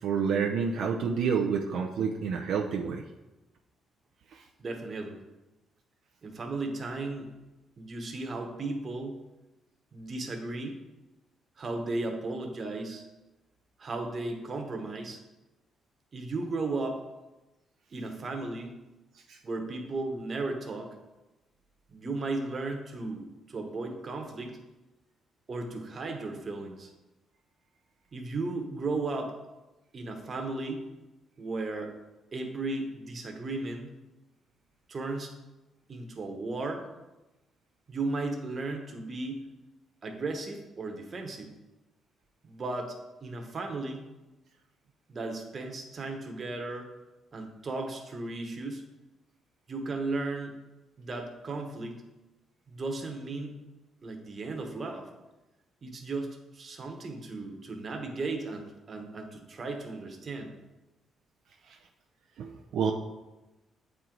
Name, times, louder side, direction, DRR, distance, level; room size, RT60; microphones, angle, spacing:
voice 1, 0.0-3.0 4.3-4.4 19.3-19.4 61.7-61.8 62.4-62.9, right 6 dB, 75° right, 1 dB, 0.6 m, -29 dB
voice 2, 4.6-5.2 6.2-7.3 7.8-9.2 9.9-10.8 11.6-13.0 13.8-15.2 16.1-17.0 17.9-18.7 19.4-20.9 21.9-24.6 25.5-26.9 28.1-29.3 29.9-30.8 31.4-32.0 32.3-33.9 34.9-35.3 35.9-36.8 37.9-39.4 40.0-41.5 42.4-42.9 43.2-44.0 45.1-46.9 47.3-48.8 49.7-50.6 51.0-52.0 52.7-53.6 54.0-55.1 55.8-60.5, right 3 dB, 40° right, 4 dB, 1.2 m, -35 dB
8.0 x 4.5 x 3.9 m, 1.0 s
cardioid pair, 90°, 0 cm